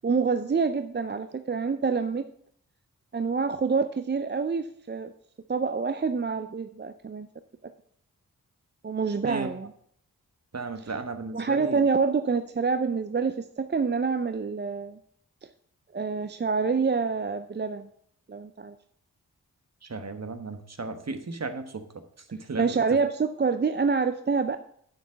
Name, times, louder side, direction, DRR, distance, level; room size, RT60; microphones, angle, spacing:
voice 1, 0.0-2.3 3.1-5.1 5.5-7.3 7.6-7.7 8.8-9.7 10.8-10.9 11.3-15.0 15.9-17.9 18.3-18.8 22.6-24.6, right 5 dB, 30° right, 10 dB, 0.5 m, -27 dB
voice 2, 10.5-11.8 19.8-21.8 22.3-23.0, right 3 dB, 45° right, 8 dB, 1.2 m, -35 dB
7.2 x 5.9 x 7.3 m, 0.67 s
cardioid pair, 45°, 36 cm